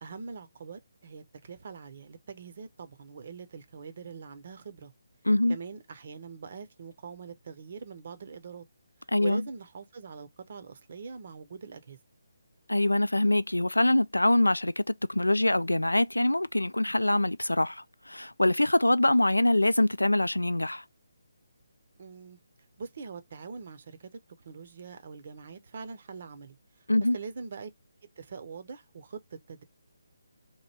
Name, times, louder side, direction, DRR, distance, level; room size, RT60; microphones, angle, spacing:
voice 1, 0.0-4.9 5.5-8.6 9.2-12.0 22.0-22.4 22.8-24.1 24.4-26.9 27.1-27.7 28.2-29.6, right 5 dB, 45° right, 0.8 m, -43 dB
voice 2, 5.2-5.6 9.1-9.4 12.7-20.8 26.9-27.2, left 1 dB, 80° left, 0.3 m, -24 dB
3.1 x 2.6 x 4.3 m
figure-of-eight pair, 145°, 0 cm